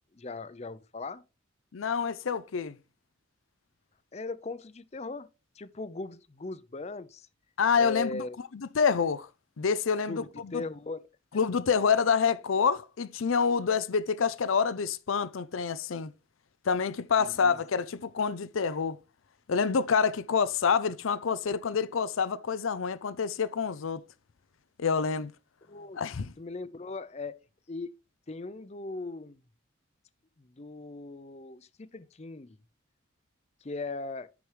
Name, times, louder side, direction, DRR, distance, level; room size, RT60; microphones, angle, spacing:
voice 1, 0.1-1.2 4.1-5.3 5.6-7.3 7.8-8.4 10.1-11.0 17.2-17.6 25.7-26.0 26.4-27.9 28.3-29.4 30.4-32.6 33.6-34.3, left 3 dB, 35° left, 0.5 m, -39 dB
voice 2, 1.7-2.7 7.6-8.2 8.5-9.3 9.6-10.6 11.3-16.1 16.7-19.0 19.5-24.0 24.8-25.3 25.9-26.3, left 6 dB, 90° left, 0.5 m, -27 dB
9.5 x 6.1 x 3.3 m
head